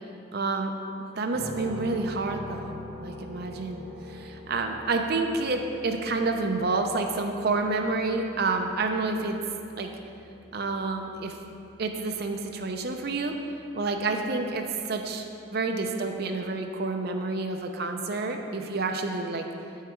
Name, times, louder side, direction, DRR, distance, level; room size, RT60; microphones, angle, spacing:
voice 1, 0.3-0.7 1.2-3.8 4.1-9.4 9.8-9.9 10.5-11.4 11.8-13.4 13.7-19.5, right 3 dB, 50° right, 4 dB, 0.6 m, -29 dB
sound 1, 1.3-15.1, left 1 dB, 10° left, 1.6 m, -45 dB
8.3 x 5.7 x 4.5 m, 2.6 s
head